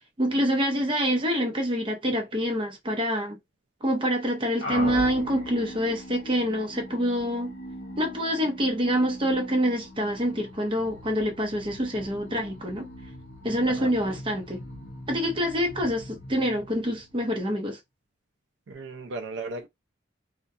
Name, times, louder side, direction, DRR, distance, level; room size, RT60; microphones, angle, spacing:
voice 1, 0.2-3.4 3.8-7.5 8.0-12.9 13.4-14.6 15.1-17.8, equal, 25° right, 0.7 m, -26 dB
sound 1, 4.6-17.5, left 1 dB, 70° left, 0.9 m, -40 dB
voice 2, 18.7-19.7, right 3 dB, 70° right, 0.4 m, -36 dB
2.3 x 2.1 x 2.6 m
head